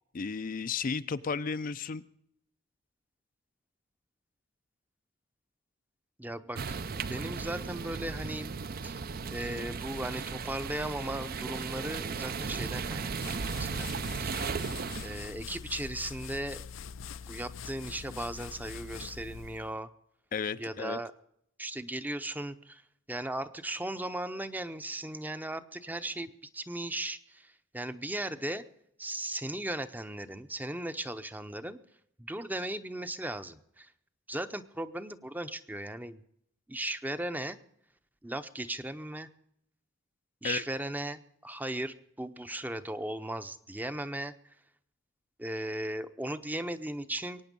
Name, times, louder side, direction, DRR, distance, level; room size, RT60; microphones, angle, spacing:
voice 1, 0.1-2.0 20.3-21.0 40.4-40.6, left 5 dB, 45° left, 12 dB, 0.5 m, -33 dB
voice 2, 6.2-6.8 7.1-8.5 8.8-9.0 9.3-13.9 14.2-14.4 15.0-16.6 17.3-19.9 20.6-21.1 21.6-22.8 23.1-28.6 29.0-31.8 32.2-33.9 34.3-36.2 36.7-37.6 38.2-39.3 40.4-44.3 45.4-47.4, right 1 dB, 10° right, 11 dB, 0.7 m, -37 dB
sound 1, 6.6-15.3, right 5 dB, 50° right, 0.6 m, -36 dB
sound 2, 13.2-19.7, left 6 dB, 85° left, 0.6 m, -44 dB
22.5 x 9.4 x 5.3 m, 0.73 s
head